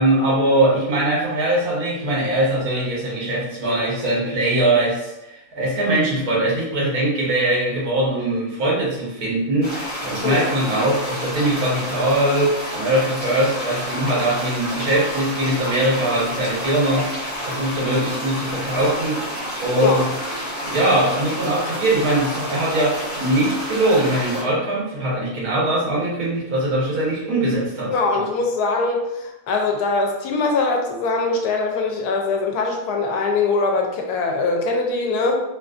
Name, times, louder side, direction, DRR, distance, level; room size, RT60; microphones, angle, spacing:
voice 1, 0.0-19.3 19.6-20.0 20.3-27.9, right 1 dB, 75° right, -5 dB, 1.6 m, -21 dB
sound 1, 9.6-24.4, equal, 20° right, 1.3 m, -29 dB
voice 2, 27.9-35.4, left 3 dB, 85° left, 2 dB, 1.2 m, -22 dB
3.9 x 2.5 x 2.4 m, 0.92 s
omnidirectional pair, 1.6 m